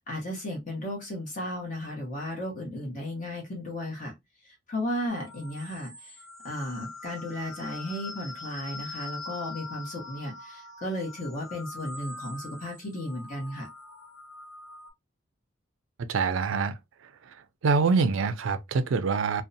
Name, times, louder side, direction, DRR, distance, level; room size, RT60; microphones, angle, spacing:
voice 1, 0.1-4.1 4.7-6.2 6.4-13.7, left 1 dB, 40° left, 0.9 m, -34 dB
sound 1, 5.1-14.9, left 3 dB, 85° left, 1.0 m, -43 dB
voice 2, 16.1-16.8 17.6-19.4, right 4 dB, 80° right, 0.4 m, -25 dB
2.6 x 2.1 x 2.6 m
head